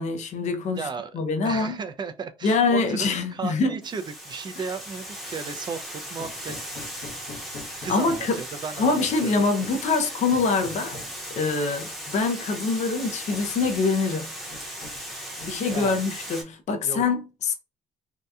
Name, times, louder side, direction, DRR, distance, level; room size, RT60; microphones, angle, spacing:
voice 1, 0.0-0.9 1.1-1.8 2.4-3.8 4.6-4.7 7.9-8.4 8.8-11.0 11.3-14.3 15.4-17.5, left 4 dB, 45° left, 0.5 m, -24 dB
voice 2, 0.7-1.1 1.4-6.6 7.8-8.9 9.2-9.5 15.7-16.0 16.8-17.0, right 5 dB, 25° right, 0.3 m, -35 dB
Water, 3.8-16.4, equal, ahead, 0.8 m, -37 dB
Hammer, 6.2-8.5 9.0-9.9 10.3-11.2 12.3-12.4 12.8-12.9 13.3-14.0 14.5-15.1 15.4-16.1, left 3 dB, 65° left, 0.8 m, -44 dB
2.7 x 2.2 x 2.3 m
cardioid pair, 110°, 17 cm